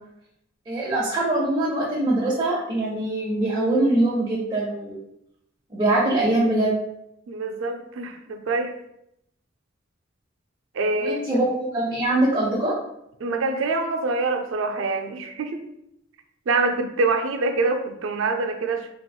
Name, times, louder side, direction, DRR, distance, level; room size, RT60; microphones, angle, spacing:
voice 1, 0.7-5.0 5.7-6.7 11.0-12.8, right 1 dB, 25° right, -6 dB, 0.6 m, -23 dB
voice 2, 7.3-8.7 10.7-11.4 13.2-15.6 16.5-18.9, right 3 dB, 80° right, 5 dB, 0.4 m, -25 dB
3.4 x 3.0 x 2.2 m, 0.79 s
head